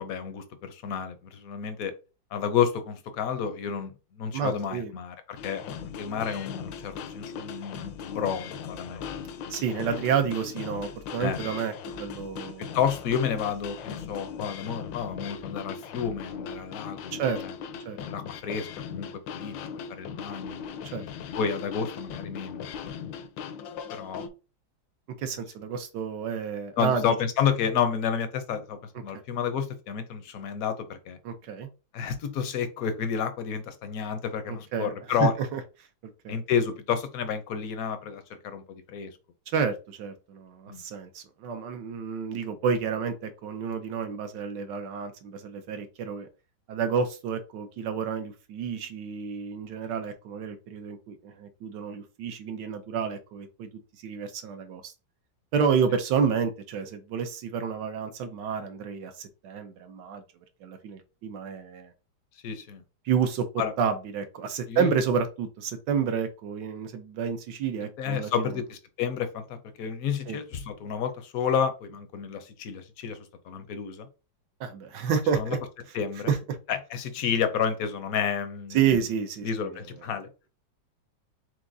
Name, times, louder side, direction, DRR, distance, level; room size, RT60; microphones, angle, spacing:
voice 1, 0.0-1.9 2.3-9.5 11.2-11.4 12.6-17.6 18.1-19.1 19.3-19.5 19.9-20.7 21.3-22.6 23.9-24.3 26.8-31.2 31.9-35.3 36.3-39.1 40.7-40.8 62.4-62.8 63.6-63.7 64.7-64.9 68.0-74.1 75.3-75.6 75.9-76.3 76.7-78.8 79.4-80.3, left 7 dB, 65° left, 9 dB, 0.9 m, -30 dB
voice 2, 4.3-4.9 9.5-12.8 17.1-17.4 17.9-18.0 20.9-21.0 25.1-27.1 31.2-31.7 34.5-34.9 35.2-35.6 36.2-36.3 39.5-46.3 46.7-53.7 54.0-54.9 55.5-60.2 60.6-61.9 63.0-63.5 63.8-68.6 70.3-70.4 74.6-75.6 76.3-76.4 78.7-79.5, right 7 dB, 75° right, 7 dB, 1.2 m, -29 dB
sound 1, 5.4-24.3, left 7 dB, 80° left, 1.3 m, -39 dB
4.7 x 3.8 x 2.6 m, 0.31 s
omnidirectional pair, 2.0 m